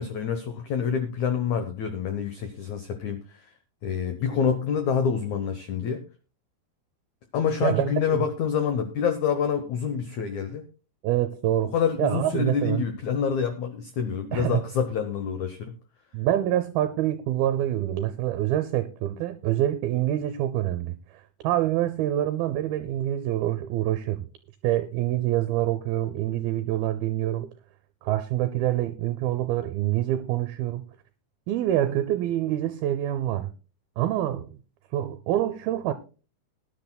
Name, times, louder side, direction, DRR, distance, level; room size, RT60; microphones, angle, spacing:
voice 1, 0.0-3.5 3.8-6.0 7.3-10.6 11.6-15.7, left 7 dB, 80° left, 1.7 m, -27 dB
voice 2, 7.6-8.2 11.0-11.7 12.0-12.8 14.3-14.6 16.1-21.0 21.4-24.2 24.6-27.5 28.0-30.8 31.5-33.5 34.0-34.5 34.9-35.9, right 13 dB, 80° right, 2.3 m, -26 dB
20.5 x 10.5 x 2.2 m
omnidirectional pair, 4.8 m